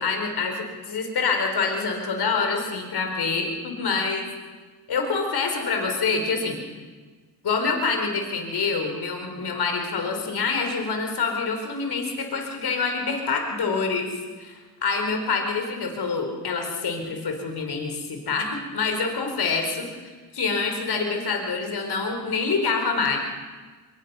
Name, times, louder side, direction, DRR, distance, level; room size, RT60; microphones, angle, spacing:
voice 1, 0.0-4.3 4.9-6.6 7.4-14.1 14.4-19.9 20.3-23.2, left 4 dB, 65° left, 3 dB, 4.5 m, -26 dB
24.5 x 23.5 x 5.6 m, 1.4 s
supercardioid pair, 55°, 42 cm